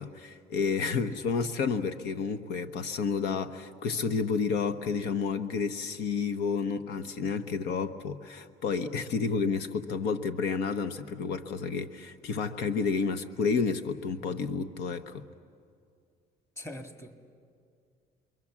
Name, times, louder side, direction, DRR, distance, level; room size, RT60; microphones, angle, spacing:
voice 1, 0.0-15.3, left 5 dB, 85° left, 9 dB, 1.0 m, -30 dB
voice 2, 16.6-17.2, left 1 dB, 15° left, 6 dB, 2.0 m, -42 dB
29.0 x 23.0 x 7.3 m, 2.3 s
cardioid pair, 110°, 17 cm